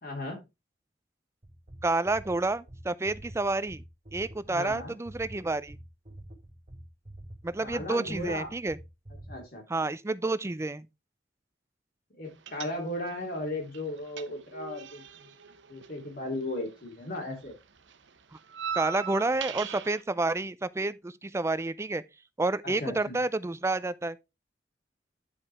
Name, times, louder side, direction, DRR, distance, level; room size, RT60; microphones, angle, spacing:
voice 1, 0.0-0.4 4.5-5.0 7.6-8.5 9.3-9.6 12.1-15.3 15.7-17.6 22.6-23.2, left 1 dB, 55° left, 3.1 m, -36 dB
sound 1, 1.4-9.4, right 1 dB, 40° right, 1.5 m, -47 dB
voice 2, 1.8-3.8 4.1-5.8 7.4-8.8 9.7-10.9 18.3-18.4 18.7-22.0 22.4-24.2, right 2 dB, 15° right, 0.4 m, -29 dB
sound 2, 12.5-13.2 13.5-16.9 17.1-20.0, right 7 dB, 90° right, 0.9 m, -39 dB
9.6 x 5.2 x 3.5 m
head